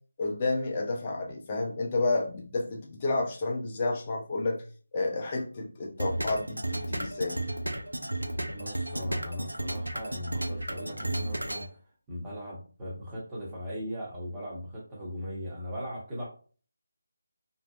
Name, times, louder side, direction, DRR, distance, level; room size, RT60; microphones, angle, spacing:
voice 1, 0.2-4.6 4.9-7.4, left 3 dB, 30° left, 1 dB, 0.5 m, -30 dB
sound 1, 6.0-11.7, right 1 dB, 85° right, 0.4 m, -33 dB
voice 2, 8.5-11.8 12.1-16.3, equal, 15° right, -5 dB, 0.8 m, -38 dB
2.6 x 2.0 x 2.3 m, 0.39 s
figure-of-eight pair, 160°, 0 cm